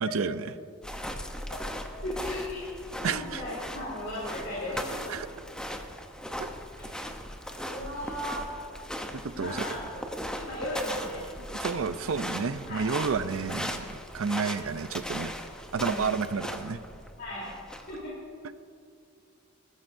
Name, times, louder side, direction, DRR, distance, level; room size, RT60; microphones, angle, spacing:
voice 1, 0.0-0.5 3.0-3.4 5.1-5.3 9.1-9.7 11.6-15.3 15.7-16.8, right 5 dB, 85° right, 12 dB, 0.5 m, -30 dB
sound 1, 0.8-18.1, equal, 5° left, 0.8 m, -38 dB
voice 2, 2.0-2.6 2.9-5.2 6.8-6.9 7.7-8.5 9.3-9.8 10.4-11.3 12.7-12.8 15.8-16.1 17.2-17.5 17.9-18.1, left 1 dB, 55° left, -8 dB, 3.5 m, -36 dB
20.5 x 13.5 x 2.7 m, 2.5 s
head